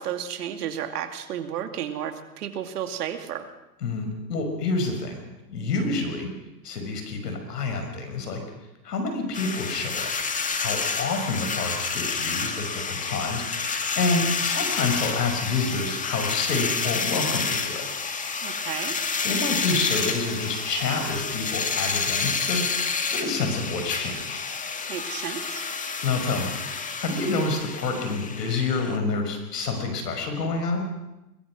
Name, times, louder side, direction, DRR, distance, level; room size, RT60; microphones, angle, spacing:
voice 1, 0.0-3.5 18.4-19.0 24.9-25.7, right 9 dB, 70° right, 7 dB, 2.6 m, -32 dB
voice 2, 3.8-6.3 6.6-8.4 8.8-10.1 10.6-17.9 19.2-24.5 26.0-30.9, left 3 dB, 80° left, 5 dB, 6.0 m, -28 dB
sound 1, 9.3-29.0, left 5 dB, 15° left, 2.0 m, -29 dB
22.0 x 22.0 x 6.2 m, 0.97 s
hypercardioid pair, 115°, 48 cm